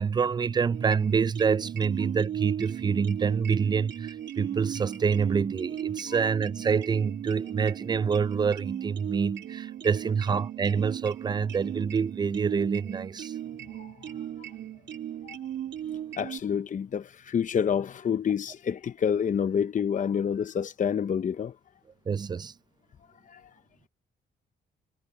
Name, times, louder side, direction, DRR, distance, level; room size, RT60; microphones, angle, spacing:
voice 1, 0.0-13.3 22.1-22.5, right 6 dB, 20° right, 0.3 m, -27 dB
sound 1, 0.7-16.4, right 10 dB, 65° right, 3.0 m, -37 dB
voice 2, 16.2-21.6 23.3-23.5, left 7 dB, 40° left, 0.8 m, -28 dB
cardioid pair, 90°, 20 cm